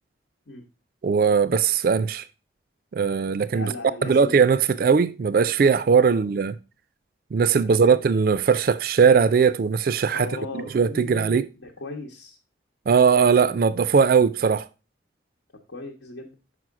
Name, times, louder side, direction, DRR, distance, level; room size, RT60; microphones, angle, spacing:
voice 1, 1.0-2.2 2.9-3.7 4.0-6.5 7.3-10.3 10.5-11.5 12.9-14.7, right 6 dB, 50° right, 0.3 m, -19 dB
voice 2, 3.5-4.5 6.1-6.3 7.8-8.0 10.1-12.4 15.7-16.3, left 2 dB, 80° left, 1.0 m, -38 dB
6.2 x 4.9 x 4.7 m
head